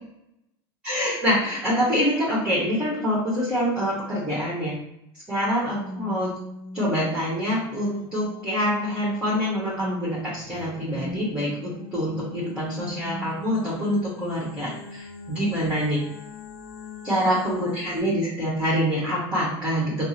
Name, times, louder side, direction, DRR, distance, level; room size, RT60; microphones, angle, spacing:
voice 1, 0.8-4.8 5.3-6.3 6.7-16.0 17.0-20.1, equal, 10° right, -8 dB, 1.3 m, -25 dB
sound 1, 5.4-18.0, left 2 dB, 65° left, 0.5 m, -40 dB
3.6 x 2.0 x 2.8 m, 0.78 s
supercardioid pair, 110°, 14 cm